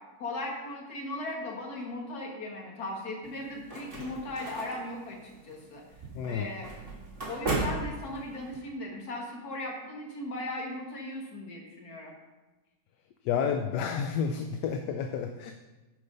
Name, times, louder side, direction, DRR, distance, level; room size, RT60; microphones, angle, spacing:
voice 1, 0.2-5.8 6.3-6.7 7.3-12.2, left 1 dB, 55° left, 0 dB, 2.1 m, -37 dB
sound 1, 3.2-8.6, right 2 dB, 30° right, 2.2 m, -36 dB
voice 2, 6.1-6.5 13.2-15.5, left 7 dB, 75° left, 5 dB, 1.2 m, -30 dB
11.0 x 4.9 x 5.3 m, 1.1 s
omnidirectional pair, 2.0 m